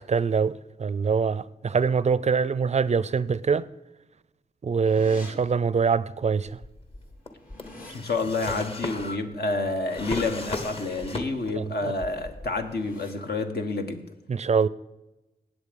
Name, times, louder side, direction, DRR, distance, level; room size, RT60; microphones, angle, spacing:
voice 1, 0.0-3.6 4.6-6.6 11.6-11.9 14.3-14.7, right 5 dB, 40° right, 0.4 m, -24 dB
sound 1, 4.8-5.3 6.5-6.6 6.9-7.9 11.1-11.4 11.8-12.1 12.6-13.1, left 2 dB, 55° left, 3.5 m, -47 dB
Drawer open or close, 6.5-11.7 12.0-12.8, left 2 dB, 35° left, 1.3 m, -36 dB
voice 2, 7.9-14.0, left 3 dB, 70° left, 1.4 m, -29 dB
18.5 x 7.9 x 5.3 m
wide cardioid pair, 85°, 17 cm